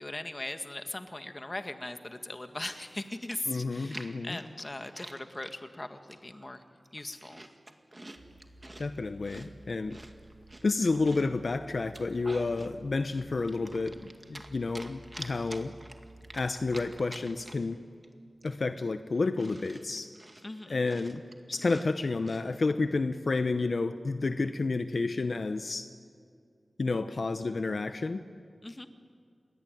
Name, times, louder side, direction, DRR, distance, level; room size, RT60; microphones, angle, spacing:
voice 1, 0.0-6.6 6.9-7.4 20.4-20.8 28.6-28.9, left 1 dB, 30° left, 7 dB, 1.8 m, -39 dB
Chewing mastication, 2.9-3.0 3.3-5.6 6.1-6.5 6.8-8.9 9.2-11.4 11.8-12.7 13.1-14.5 14.7-17.7 18.0-18.1 18.4-22.5, right 1 dB, 25° right, 2.1 m, -48 dB
voice 2, 3.5-4.4 8.8-10.0 10.6-15.7 16.3-17.8 18.4-20.1 20.7-21.2 21.5-25.9 26.8-28.2, left 3 dB, 70° left, 9 dB, 0.9 m, -30 dB
sound 1, 8.1-17.1, right 1 dB, 70° right, 5.5 m, -54 dB
28.5 x 21.5 x 9.3 m, 2.3 s
wide cardioid pair, 75°, 0 cm